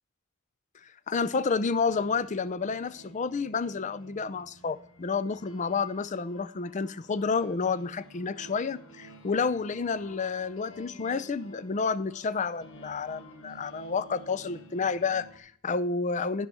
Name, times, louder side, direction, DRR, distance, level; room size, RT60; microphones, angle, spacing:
voice 1, 1.1-16.5, left 5 dB, 35° left, 16 dB, 0.4 m, -30 dB
sound 1, 1.8-15.4, right 1 dB, 85° left, 1.4 m, -52 dB
15.0 x 5.4 x 4.2 m, 0.65 s
head